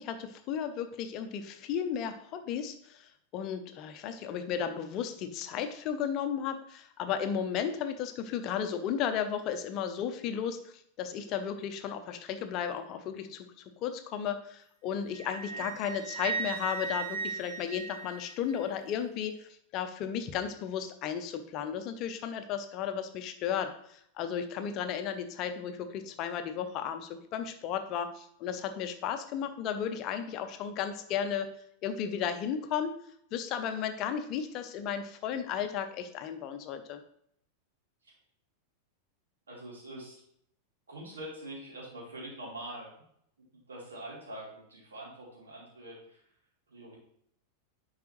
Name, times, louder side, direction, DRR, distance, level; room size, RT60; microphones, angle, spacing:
voice 1, 0.0-13.5 13.8-31.5 31.8-32.9 33.3-37.0, left 8 dB, 40° left, 8 dB, 0.7 m, -34 dB
Wind instrument woodwind instrument, 15.1-18.6, right 5 dB, 55° right, 2.0 m, -37 dB
voice 2, 39.5-40.2 40.9-42.9 43.5-46.2 46.7-47.0, right 1 dB, 70° right, -4 dB, 3.3 m, -44 dB
10.5 x 4.8 x 3.1 m, 0.69 s
figure-of-eight pair, 90°, 0 cm